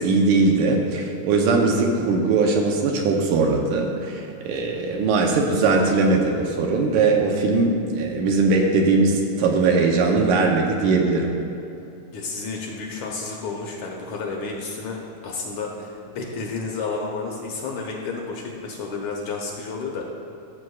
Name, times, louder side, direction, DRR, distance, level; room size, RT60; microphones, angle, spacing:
voice 1, 0.0-11.3, right 3 dB, 75° right, 1 dB, 2.1 m, -20 dB
voice 2, 12.1-20.1, left 4 dB, 75° left, -1 dB, 1.8 m, -31 dB
14.0 x 7.3 x 2.4 m, 2.8 s
omnidirectional pair, 3.8 m